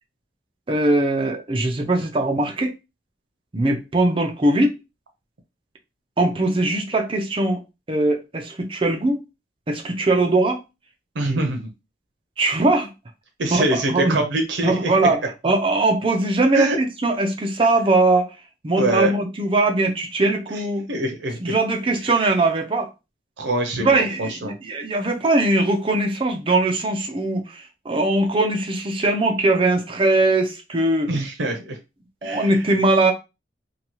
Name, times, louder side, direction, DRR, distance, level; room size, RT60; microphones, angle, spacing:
voice 1, 0.7-2.8 3.5-4.7 6.2-7.6 7.9-9.2 9.7-10.6 12.4-12.9 13.5-14.2 14.6-18.3 18.6-20.9 21.4-22.9 23.8-31.3 32.2-33.1, right 2 dB, 30° right, 0.5 m, -21 dB
voice 2, 11.2-11.6 13.4-14.9 16.5-16.8 18.8-19.1 20.9-21.5 23.4-24.5 31.1-31.8 32.2-32.5, right 2 dB, 85° right, 0.6 m, -24 dB
2.8 x 2.3 x 2.9 m
head